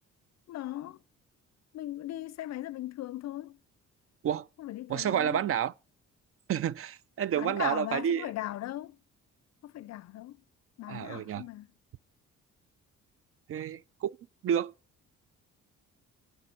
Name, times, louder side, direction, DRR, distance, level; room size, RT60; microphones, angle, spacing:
voice 1, 0.5-1.0 1.7-3.6 4.6-5.5 7.3-9.0 9.6-10.4 10.8-11.7, left 14 dB, 60° left, 0.5 m, -38 dB
voice 2, 4.9-5.7 6.5-8.3 10.9-11.4 13.5-14.2 14.4-14.7, right 9 dB, 50° right, 0.4 m, -30 dB
9.6 x 5.6 x 7.6 m
cardioid pair, 90°, 30 cm